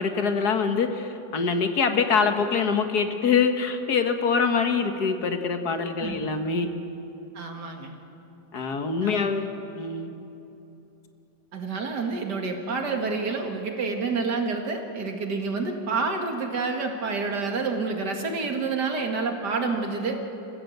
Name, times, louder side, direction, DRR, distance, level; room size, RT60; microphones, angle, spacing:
voice 1, 0.0-6.7 8.5-9.5 9.8-10.1, left 5 dB, 65° left, 7 dB, 1.9 m, -24 dB
voice 2, 7.3-7.9 9.0-9.2 11.5-20.2, right 4 dB, 75° right, 3 dB, 2.6 m, -28 dB
29.0 x 15.0 x 8.0 m, 2.9 s
omnidirectional pair, 1.8 m